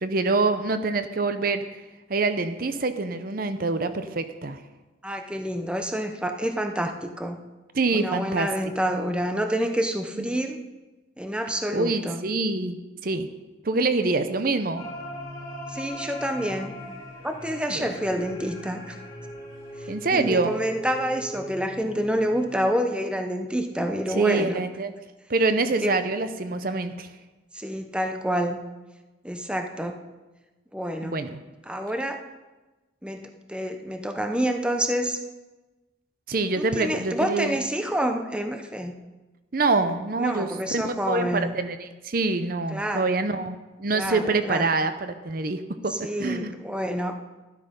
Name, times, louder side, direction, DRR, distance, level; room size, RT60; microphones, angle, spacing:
voice 1, 0.0-1.6 2.1-4.6 7.7-8.5 10.2-10.3 11.7-12.8 13.0-13.3 13.6-14.8 17.7-17.9 19.9-20.6 24.1-24.9 25.3-27.1 31.0-31.3 36.3-37.6 39.5-45.9 46.2-46.5, right 3 dB, 45° right, 10 dB, 0.7 m, -25 dB
voice 2, 5.0-7.4 7.9-10.6 11.2-12.2 15.7-16.8 17.2-19.0 19.8-24.6 25.6-26.0 27.5-28.7 29.2-30.0 30.7-31.2 31.7-32.2 33.0-35.2 36.6-39.0 40.2-41.5 42.7-43.1 43.9-44.7 45.9-47.2, equal, 5° right, 5 dB, 0.7 m, -28 dB
sound 1, 14.8-22.6, equal, 20° left, 3.0 m, -39 dB
12.0 x 11.5 x 5.2 m, 1.2 s
head